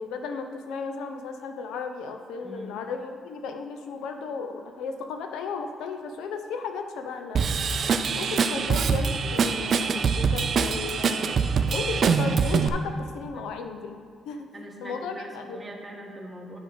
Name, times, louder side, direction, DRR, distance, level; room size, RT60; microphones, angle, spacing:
voice 1, 0.0-7.4 7.7-14.0 14.3-14.5 14.8-15.6, left 5 dB, 85° left, 6 dB, 0.7 m, -35 dB
voice 2, 2.4-2.8 13.3-13.5 14.5-16.6, equal, 20° right, 0 dB, 1.4 m, -42 dB
Drum kit / Drum, 7.4-12.7, right 5 dB, 55° right, 0.5 m, -24 dB
7.0 x 5.4 x 6.1 m, 2.1 s
cardioid pair, 90°, 0 cm